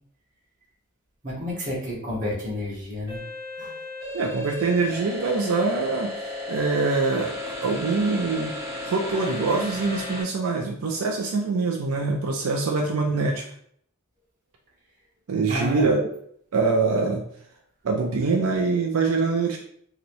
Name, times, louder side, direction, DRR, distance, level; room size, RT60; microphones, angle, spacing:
voice 1, 1.2-3.2 3.6-3.8 15.5-15.9, left 1 dB, 35° right, -5 dB, 1.1 m, -30 dB
sound 1, 3.1-10.2, left 2 dB, 15° right, 1.2 m, -34 dB
voice 2, 4.1-8.6 8.8-13.5 15.3-16.0 16.5-17.2 17.8-19.6, right 4 dB, 80° right, 1 dB, 0.4 m, -24 dB
3.0 x 2.9 x 2.6 m, 0.65 s
head